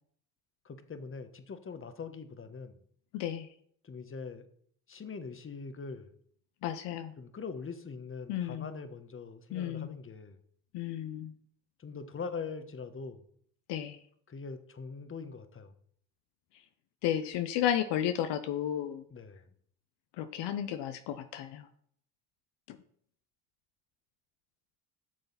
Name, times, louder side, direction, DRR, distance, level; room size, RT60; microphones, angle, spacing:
voice 1, 0.6-2.7 3.8-4.5 4.9-6.2 7.2-10.4 11.8-13.2 14.3-15.7 19.1-19.4, left 5 dB, 25° left, 1.3 m, -42 dB
voice 2, 3.1-3.5 6.6-7.1 8.3-8.7 9.5-10.0 10.7-11.3 13.7-14.0 17.0-19.0 20.2-21.7 22.7-22.8, left 10 dB, 65° left, 0.9 m, -33 dB
12.0 x 6.7 x 4.1 m
hypercardioid pair, 70°, 46 cm